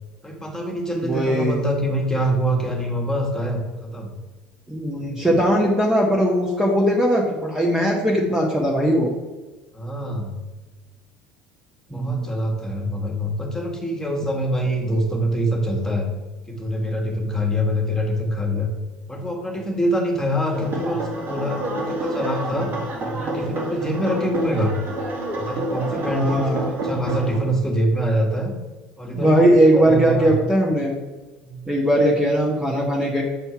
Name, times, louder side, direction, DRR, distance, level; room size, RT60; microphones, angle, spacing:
voice 1, 0.2-4.2 9.7-10.4 11.9-16.1 16.5-18.7 19.1-22.7 23.0-24.8 25.4-28.5 29.0-29.5 29.7-30.3 31.4-31.7, equal, 10° left, 0 dB, 1.8 m, -25 dB
voice 2, 1.0-1.6 4.7-9.1 11.9-12.3 26.1-26.7 29.1-30.9 31.7-33.2, right 1 dB, 10° right, -3 dB, 1.3 m, -19 dB
sound 1, 20.5-27.4, right 1 dB, 50° right, 2.0 m, -28 dB
7.4 x 4.3 x 4.6 m, 1.2 s
hypercardioid pair, 65°, 5 cm